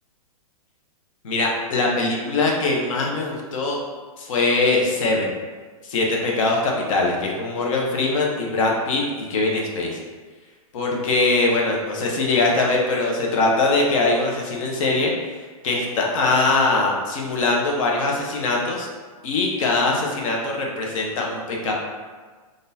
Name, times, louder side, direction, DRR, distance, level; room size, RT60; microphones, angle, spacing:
voice 1, 1.2-3.8 4.2-5.3 5.9-10.0 10.7-15.1 15.6-18.9 19.2-21.7, left 3 dB, 60° left, -1 dB, 0.8 m, -22 dB
3.6 x 2.5 x 2.6 m, 1.4 s
hypercardioid pair, 140°, 19 cm